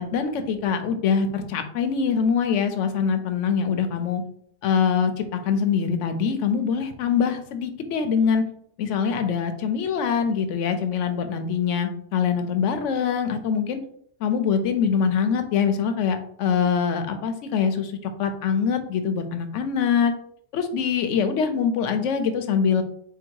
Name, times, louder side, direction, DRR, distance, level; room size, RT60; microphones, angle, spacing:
voice 1, 0.0-4.2 4.6-8.4 8.8-13.8 14.2-20.1 20.5-22.8, left 6 dB, 90° left, 8 dB, 0.9 m, -24 dB
3.8 x 2.3 x 4.5 m, 0.66 s
omnidirectional pair, 1.2 m